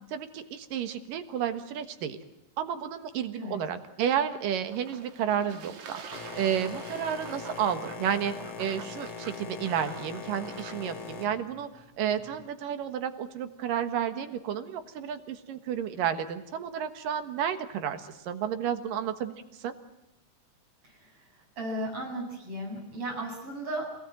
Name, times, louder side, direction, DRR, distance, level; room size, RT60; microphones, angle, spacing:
voice 1, 0.1-2.2 2.6-6.0 6.4-11.7 12.0-19.7, right 9 dB, 90° right, 9 dB, 3.2 m, -31 dB
Fowl / Bird / Water, 4.6-11.2, right 6 dB, 60° right, 3.1 m, -47 dB
Boat Water vehicle, 6.1-12.5, left 6 dB, 55° left, 3.6 m, -42 dB
voice 2, 20.8-23.8, right 1 dB, 40° right, 0 dB, 8.7 m, -36 dB
27.5 x 18.5 x 9.1 m, 0.89 s
omnidirectional pair, 3.8 m